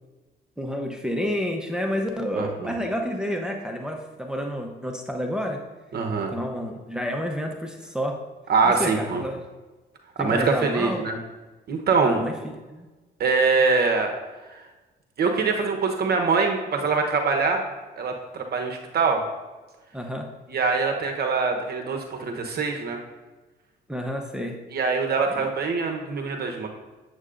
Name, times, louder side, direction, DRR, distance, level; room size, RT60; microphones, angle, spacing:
voice 1, 0.6-5.6 6.3-8.2 8.6-9.4 10.2-11.1 12.0-12.9 19.9-20.3 23.9-24.6 25.3-25.5, equal, 5° right, 2 dB, 0.8 m, -30 dB
voice 2, 2.3-2.8 5.9-6.3 8.5-9.2 10.2-11.2 11.7-12.2 13.2-14.1 14.5-14.6 15.2-17.6 18.0-19.2 20.5-23.0 24.7-26.7, right 4 dB, 55° right, 3 dB, 0.9 m, -23 dB
8.2 x 7.6 x 2.5 m, 1.2 s
cardioid pair, 90°, 20 cm